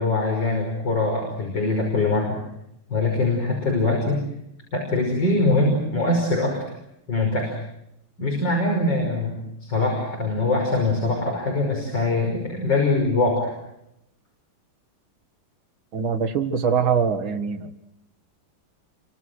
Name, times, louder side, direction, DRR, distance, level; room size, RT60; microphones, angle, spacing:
voice 1, 0.0-2.4 2.9-4.2 4.7-6.6 7.1-7.5 8.2-13.5, left 2 dB, 55° left, 0 dB, 6.4 m, -23 dB
voice 2, 15.9-17.7, right 6 dB, 65° right, 7 dB, 2.6 m, -23 dB
29.5 x 25.5 x 6.4 m, 0.82 s
omnidirectional pair, 2.4 m